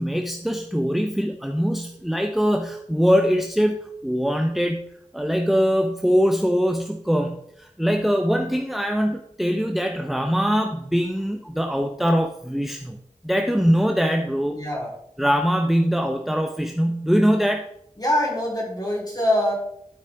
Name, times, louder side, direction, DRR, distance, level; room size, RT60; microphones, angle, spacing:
voice 1, 0.0-4.9 5.1-13.0 13.2-14.6 15.2-17.6, equal, ahead, 3 dB, 0.7 m, -22 dB
voice 2, 14.5-14.9 18.0-19.5, left 1 dB, 30° left, -4 dB, 3.6 m, -23 dB
12.0 x 4.9 x 3.5 m, 0.72 s
wide cardioid pair, 55°, 13 cm